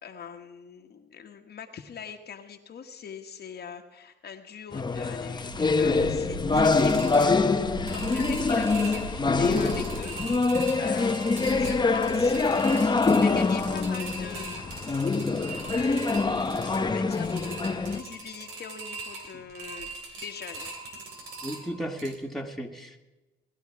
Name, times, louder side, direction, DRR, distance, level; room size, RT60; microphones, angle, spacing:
voice 1, 0.0-10.1 10.8-15.3 15.7-19.9 20.2-20.7, left 7 dB, 55° left, 4 dB, 1.4 m, -42 dB
sound 1, 4.7-18.0, left 3 dB, 20° left, 0.9 m, -25 dB
sound 2, 5.4-22.1, right 2 dB, 85° right, 3.0 m, -39 dB
voice 2, 21.4-23.0, equal, ahead, 1 dB, 1.9 m, -34 dB
19.0 x 11.5 x 4.7 m, 1.1 s
cardioid pair, 90°, 20 cm